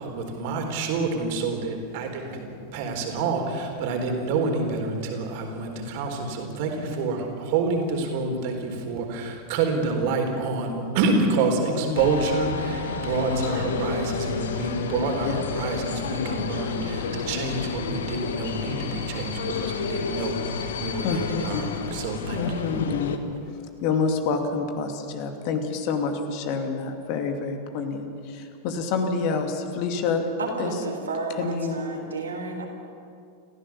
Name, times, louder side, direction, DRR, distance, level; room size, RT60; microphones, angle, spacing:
voice 1, 0.0-22.5, right 3 dB, 50° right, 3 dB, 4.0 m, -28 dB
voice 2, 11.7-12.0 15.2-15.4 21.0-21.9 22.3-23.1 23.8-30.2 30.6-30.7 31.4-31.8, left 4 dB, 45° left, 5 dB, 2.5 m, -27 dB
sound 1, 12.0-23.2, left 6 dB, 65° left, 1.6 m, -31 dB
voice 3, 30.4-32.6, right 3 dB, 70° right, 2 dB, 3.9 m, -32 dB
28.5 x 15.5 x 7.3 m, 2.5 s
figure-of-eight pair, 90°, 0 cm